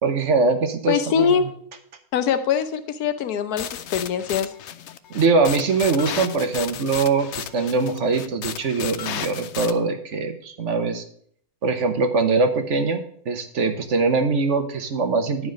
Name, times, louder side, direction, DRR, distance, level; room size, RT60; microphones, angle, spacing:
voice 1, 0.0-1.5 5.1-11.0 11.6-15.5, right 4 dB, 55° right, 7 dB, 1.2 m, -22 dB
voice 2, 0.9-1.5 2.1-4.5, left 7 dB, 85° left, 10 dB, 1.3 m, -23 dB
sound 1, 3.6-9.7, left 10 dB, 65° left, 0.7 m, -33 dB
10.5 x 4.8 x 6.3 m, 0.62 s
omnidirectional pair, 1.6 m